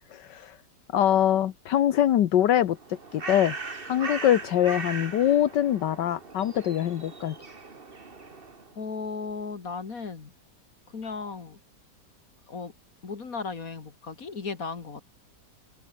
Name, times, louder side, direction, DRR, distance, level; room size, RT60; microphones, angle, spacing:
voice 1, 0.1-0.6 0.9-3.6 3.8-7.4, left 11 dB, 80° left, 1.6 m, -23 dB
Bird, 2.7-8.7, right 4 dB, 30° right, 2.1 m, -39 dB
voice 2, 8.8-10.3 10.9-11.6 12.5-12.7 13.0-15.0, left 4 dB, 50° left, 2.4 m, -35 dB
open air
omnidirectional pair, 1.9 m